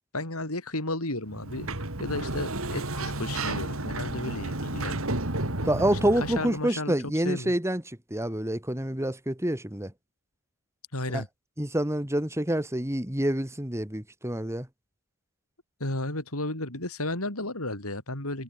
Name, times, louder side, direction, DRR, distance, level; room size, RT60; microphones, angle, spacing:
voice 1, 0.1-5.1 5.9-7.5 10.9-11.3 15.8-18.4, left 2 dB, 85° left, 7.7 m, -33 dB
Sliding door, 1.3-6.6, right 2 dB, 70° right, 3.8 m, -32 dB
voice 2, 5.6-7.8 8.1-9.9 11.1-11.2 11.6-14.7, right 1 dB, 15° right, 2.4 m, -27 dB
head